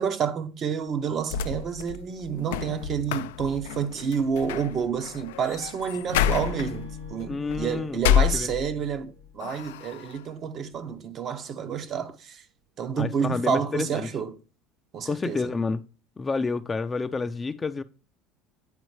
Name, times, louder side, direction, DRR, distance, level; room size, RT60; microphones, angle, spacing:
voice 1, 0.0-12.4 12.8-14.4 14.9-15.4, right 7 dB, 45° right, 0.8 m, -29 dB
sound 1, 1.0-9.0 9.4-10.2, left 10 dB, 90° left, 0.3 m, -29 dB
Acoustic guitar / Strum, 6.1-9.5, left 1 dB, 80° right, 3.2 m, -41 dB
voice 2, 7.3-8.0 8.3-8.5 13.0-14.1 15.1-15.8 16.2-17.8, left 4 dB, 20° left, 0.4 m, -29 dB
9.0 x 4.3 x 3.2 m
supercardioid pair, 95°, 0 cm